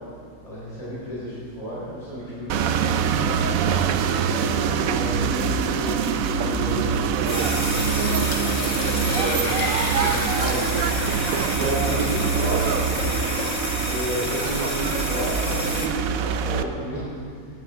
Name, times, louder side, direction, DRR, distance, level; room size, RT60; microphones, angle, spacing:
voice 1, 0.4-3.8 4.3-9.5 9.9-10.7 11.5-12.8 13.9-17.0, equal, 20° left, -8 dB, 4.2 m, -31 dB
sound 1, 2.5-16.6, right 7 dB, 70° right, 0.8 m, -24 dB
sound 2, 7.2-15.9, left 3 dB, 85° left, 2.2 m, -30 dB
sound 3, 8.7-13.8, left 2 dB, 65° left, 2.2 m, -35 dB
19.5 x 10.0 x 3.8 m, 2.2 s
omnidirectional pair, 1.9 m